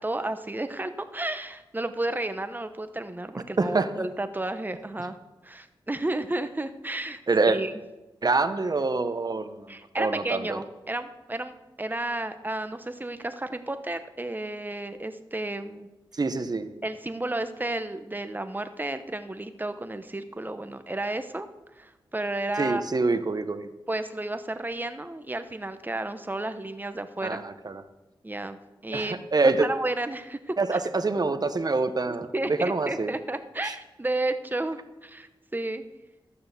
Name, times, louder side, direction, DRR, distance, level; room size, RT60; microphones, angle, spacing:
voice 1, 0.0-5.2 5.4-7.7 9.7-15.9 16.8-21.5 21.7-22.8 23.9-27.4 28.2-28.6 28.8-30.8 32.3-35.8, right 2 dB, 20° right, 9 dB, 1.0 m, -32 dB
voice 2, 3.6-3.9 7.3-7.6 8.2-9.7 10.0-10.6 16.2-16.7 22.6-23.7 27.2-27.8 28.9-29.7 30.6-33.1 33.6-33.7, right 3 dB, 45° right, 9 dB, 1.0 m, -26 dB
13.0 x 6.8 x 6.8 m, 1.0 s
cardioid pair, 55°, 9 cm